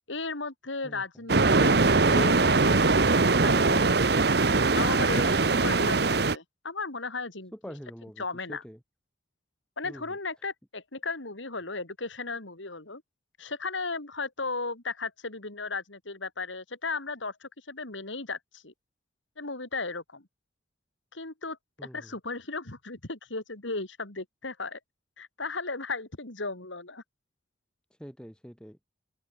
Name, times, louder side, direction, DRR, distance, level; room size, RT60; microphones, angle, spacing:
voice 1, 0.1-2.9 3.4-4.1 4.7-7.7 8.2-8.6 9.8-13.0 13.4-18.7 19.4-20.3 21.1-21.6 21.9-24.8 25.2-27.0, left 3 dB, 80° left, 3.3 m, -35 dB
sound 1, 1.3-6.4, right 3 dB, 55° right, 1.0 m, -22 dB
voice 2, 7.5-8.8 9.8-10.2 21.8-22.1 28.0-28.8, equal, 5° left, 7.1 m, -45 dB
head